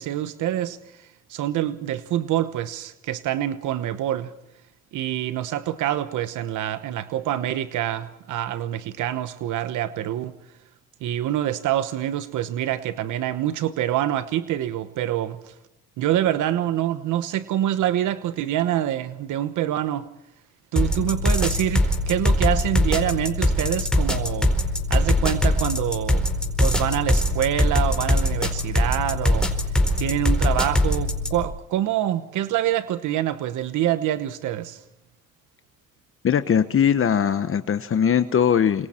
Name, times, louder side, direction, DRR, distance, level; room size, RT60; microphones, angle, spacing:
voice 1, 0.0-4.3 4.9-10.3 11.0-15.5 16.0-20.1 20.7-24.5 24.9-26.3 26.6-29.5 30.0-34.8, right 12 dB, 90° right, 1.1 m, -26 dB
sound 1, 20.8-31.4, left 1 dB, 5° left, 4.4 m, -22 dB
voice 2, 36.2-38.9, left 8 dB, 45° left, 1.1 m, -20 dB
29.0 x 26.0 x 4.4 m
cardioid pair, 100°, 29 cm